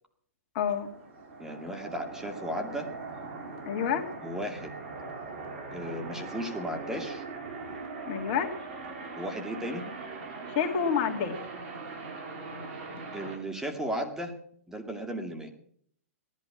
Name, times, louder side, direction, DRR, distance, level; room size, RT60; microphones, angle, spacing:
voice 1, 0.5-0.9 3.7-4.1 8.1-8.6 10.5-11.4, left 7 dB, 45° left, 5 dB, 2.5 m, -28 dB
sound 1, 0.6-13.4, right 3 dB, 55° right, 4.8 m, -41 dB
voice 2, 1.4-2.9 4.2-4.7 5.7-7.2 9.2-9.8 12.9-14.3 14.7-15.5, equal, 5° right, 4 dB, 2.4 m, -35 dB
18.0 x 11.5 x 6.1 m, 0.63 s
hypercardioid pair, 120°, 8 cm